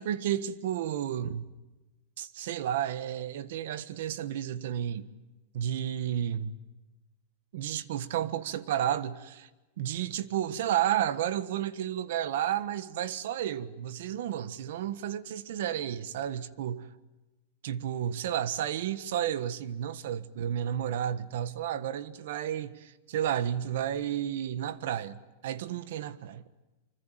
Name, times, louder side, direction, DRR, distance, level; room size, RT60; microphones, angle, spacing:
voice 1, 0.0-1.5 2.2-5.1 5.5-6.5 7.5-9.5 9.8-16.9 17.6-26.5, right 10 dB, 55° right, 1.4 m, -32 dB
25.0 x 25.0 x 9.2 m
supercardioid pair, 180°, 0 cm